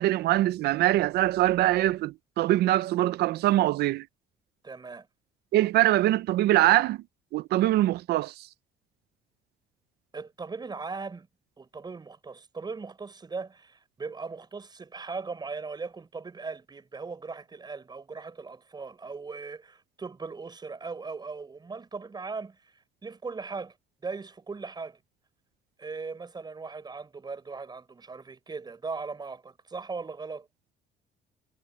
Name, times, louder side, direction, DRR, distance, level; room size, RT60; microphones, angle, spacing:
voice 1, 0.0-4.1 5.5-7.0 7.3-8.5, right 15 dB, 75° right, 0.6 m, -23 dB
voice 2, 4.6-5.1 10.1-11.3 11.6-22.7 23.0-23.8 24.0-25.0 25.8-30.5, right 4 dB, 25° right, 5.7 m, -38 dB
cardioid pair, 110°, 17 cm